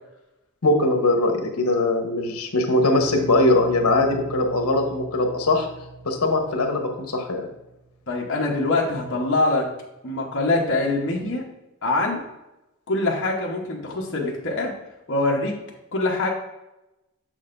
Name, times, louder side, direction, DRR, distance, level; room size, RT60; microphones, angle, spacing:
voice 1, 0.6-5.7 6.0-7.5, left 2 dB, 80° left, 4 dB, 1.0 m, -21 dB
sound 1, 3.0-7.9, right 3 dB, 60° right, 2.3 m, -39 dB
voice 2, 8.1-9.7 10.0-11.5 11.8-12.2 12.9-14.7 15.1-15.5 15.9-16.3, left 2 dB, 55° left, -2 dB, 1.0 m, -24 dB
6.6 x 6.3 x 2.5 m, 0.95 s
head